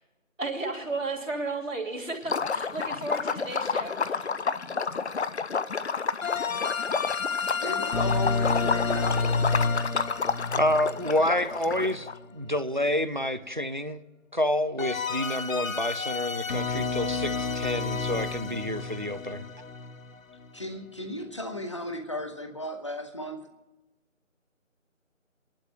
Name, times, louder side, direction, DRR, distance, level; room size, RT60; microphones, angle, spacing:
voice 1, 0.4-4.2, right 3 dB, 75° right, 1 dB, 3.1 m, -33 dB
Liquid, 2.2-12.1, left 5 dB, 55° left, 0.6 m, -30 dB
sound 1, 6.2-12.2 14.8-20.6, left 4 dB, 85° left, 0.9 m, -30 dB
voice 2, 7.6-9.9 20.5-23.5, left 1 dB, 25° left, 6 dB, 0.8 m, -36 dB
voice 3, 10.6-14.0 14.3-19.4, left 1 dB, 40° right, 13 dB, 0.4 m, -28 dB
29.0 x 11.5 x 2.7 m, 1.1 s
figure-of-eight pair, 165°, 39 cm